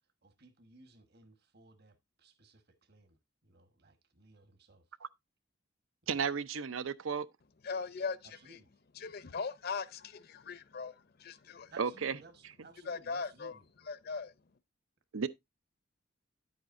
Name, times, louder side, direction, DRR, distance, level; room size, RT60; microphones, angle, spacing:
voice 1, 0.2-3.2 3.4-4.8 6.0-6.1 8.3-8.7 11.7-13.6, right 3 dB, 55° right, 1.3 m, -59 dB
voice 2, 6.1-7.3 11.8-12.2 15.1-15.3, right 6 dB, 90° right, 0.6 m, -33 dB
voice 3, 7.6-8.6 8.9-11.7 12.8-13.6 13.8-14.3, left 5 dB, 50° left, 0.6 m, -39 dB
9.9 x 8.0 x 2.5 m
head